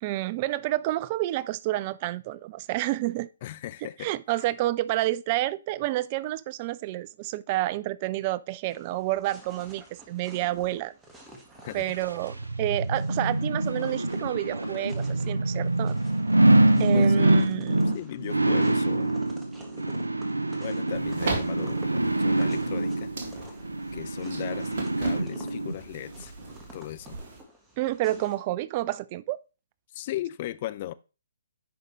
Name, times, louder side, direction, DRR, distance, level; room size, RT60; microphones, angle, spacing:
voice 1, 0.0-3.3 4.0-10.9 11.7-15.9 16.8-18.0 27.8-29.4, right 16 dB, 30° right, 0.3 m, -29 dB
voice 2, 3.4-4.1 11.6-12.0 16.7-17.3 17.9-19.1 20.6-23.1 23.9-26.3 26.7-27.2 29.9-30.9, left 14 dB, 35° left, 0.4 m, -37 dB
sound 1, 8.7-28.4, right 1 dB, 10° right, 1.5 m, -50 dB
sound 2, 11.9-25.8 26.2-26.3, right 1 dB, 80° right, 0.6 m, -25 dB
sound 3, 20.9-27.4, right 3 dB, 45° right, 1.9 m, -37 dB
10.5 x 5.1 x 3.1 m
figure-of-eight pair, 130°, 0 cm